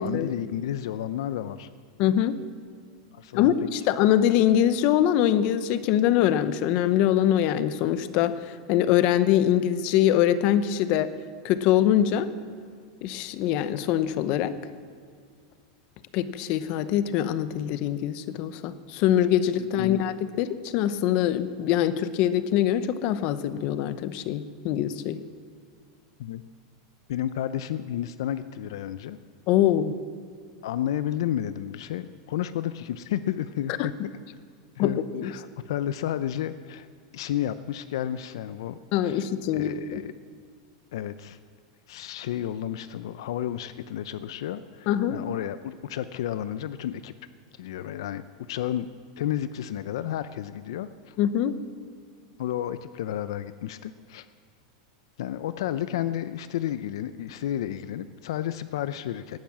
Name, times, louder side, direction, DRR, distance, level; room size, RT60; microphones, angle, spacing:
voice 1, 0.0-1.7 3.1-3.5 19.6-20.0 26.2-26.4 27.1-29.2 30.6-33.9 34.8-36.9 37.1-40.1 40.9-41.4 41.9-47.1 47.6-48.9 49.2-51.2 52.4-54.3 55.2-59.4, left 11 dB, 70° left, 13 dB, 0.5 m, -32 dB
voice 2, 2.0-2.4 3.3-11.1 11.4-12.3 13.0-14.5 16.1-25.2 29.5-29.9 33.8-33.9 34.8-35.3 38.9-40.0 44.9-45.2 51.2-51.5, left 11 dB, 40° left, 13 dB, 0.8 m, -23 dB
18.0 x 10.5 x 7.5 m, 2.1 s
supercardioid pair, 165°, 3 cm